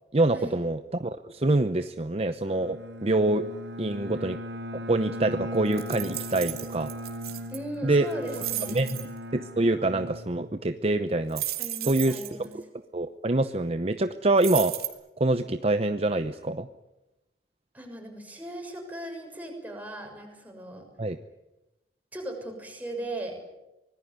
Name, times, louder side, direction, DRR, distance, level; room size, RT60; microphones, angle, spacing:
voice 1, 0.1-3.5 3.8-4.4 4.9-6.9 7.8-8.1 8.7-11.4 11.8-12.2 12.5-12.6 12.9-14.8 15.2-16.7 21.0-21.2, right 2 dB, 35° right, 10 dB, 0.8 m, -25 dB
Bowed string instrument, 2.5-10.9, equal, 85° right, 5.0 m, -39 dB
sound 1, 5.7-7.6 8.1-9.0 11.3-12.4 14.4-14.9, right 15 dB, 60° right, 2.8 m, -34 dB
voice 2, 7.5-9.0 11.6-12.5 17.7-20.8 22.1-23.3, right 1 dB, 10° right, 1 dB, 6.7 m, -38 dB
25.0 x 19.5 x 9.5 m, 0.99 s
head